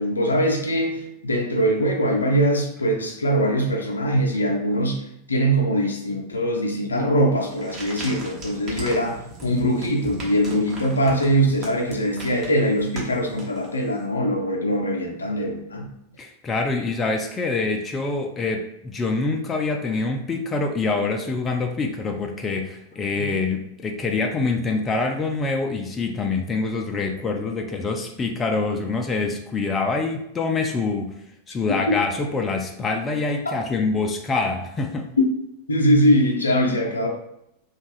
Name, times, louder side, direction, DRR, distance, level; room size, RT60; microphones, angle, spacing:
voice 1, 0.0-5.0 5.3-15.9 23.3-23.4 31.7-32.0 35.2-35.3 35.7-37.1, equal, 75° left, 2 dB, 0.5 m, -22 dB
sound 1, 7.4-14.0, right 2 dB, 30° right, 0.8 m, -38 dB
voice 2, 16.2-31.1 31.5-35.1, left 3 dB, 20° left, 3 dB, 0.3 m, -25 dB
2.5 x 2.3 x 3.1 m, 0.78 s
figure-of-eight pair, 90°, 0 cm